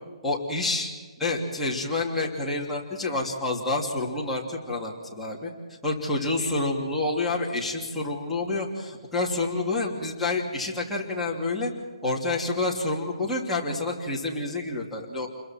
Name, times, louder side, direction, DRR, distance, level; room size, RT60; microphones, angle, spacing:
voice 1, 0.2-0.9 1.2-5.5 5.8-11.7 12.0-15.3, left 2 dB, ahead, -7 dB, 3.1 m, -28 dB
30.0 x 23.0 x 4.6 m, 1.5 s
hypercardioid pair, 165°, 4 cm